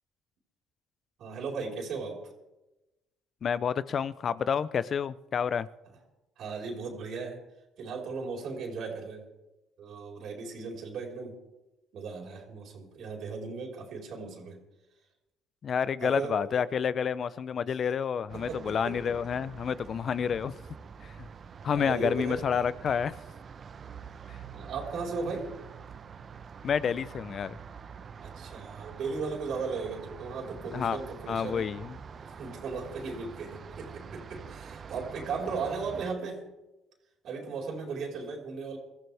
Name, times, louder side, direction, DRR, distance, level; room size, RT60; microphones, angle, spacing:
voice 1, 1.2-2.2 6.4-7.4 7.8-9.2 9.8-11.4 11.9-14.6 16.0-16.4 18.3-19.1 21.7-22.4 24.5-25.5 28.2-31.7 32.2-36.4 37.2-38.8, right 4 dB, 65° right, 4.6 m, -36 dB
voice 2, 3.4-5.7 15.6-20.5 21.0-21.3 21.6-23.1 24.3-24.4 26.6-27.6 30.7-31.0 31.3-32.0, left 7 dB, 50° left, 0.7 m, -29 dB
sound 1, 18.3-36.1, right 6 dB, 45° right, 0.9 m, -46 dB
23.0 x 14.5 x 3.5 m
supercardioid pair, 75°, 0 cm